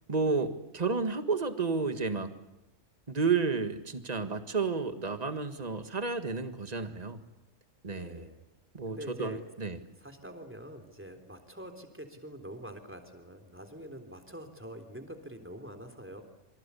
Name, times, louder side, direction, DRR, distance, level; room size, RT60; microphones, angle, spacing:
voice 1, 0.1-2.3 3.1-7.2 7.8-8.3 8.7-9.8, right 4 dB, 30° right, 9 dB, 1.7 m, -31 dB
voice 2, 7.9-8.4 8.9-9.4 9.9-16.2, equal, 10° right, 5 dB, 3.6 m, -45 dB
28.0 x 25.0 x 8.4 m, 0.88 s
omnidirectional pair, 1.3 m